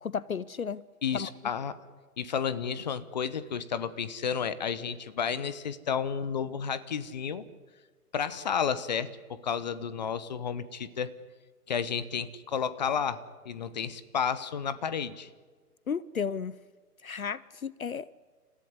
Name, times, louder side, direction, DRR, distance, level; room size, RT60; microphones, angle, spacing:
voice 1, 0.0-0.8 1.1-1.3 15.9-16.5 17.0-18.1, left 6 dB, 60° left, 0.7 m, -33 dB
voice 2, 1.0-1.8 2.2-7.4 8.1-11.1 11.7-15.3, left 7 dB, 30° left, 0.9 m, -32 dB
30.0 x 15.0 x 9.8 m
figure-of-eight pair, 135°, 47 cm